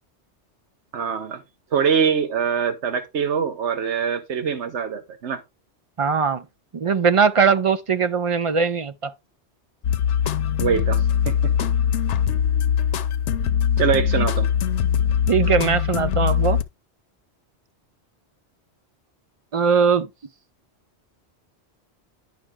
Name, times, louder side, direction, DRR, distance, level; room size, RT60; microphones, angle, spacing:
voice 1, 0.9-1.4 1.7-5.4 10.6-11.7 13.8-14.5, right 7 dB, 85° right, 1.1 m, -24 dB
voice 2, 6.0-6.4 6.7-9.1 14.2-14.3 15.3-16.6 19.5-20.1, right 6 dB, 50° right, 0.4 m, -20 dB
sound 1, 9.8-16.6, left 8 dB, 90° left, 1.0 m, -21 dB
10.0 x 5.8 x 3.4 m
omnidirectional pair, 1.1 m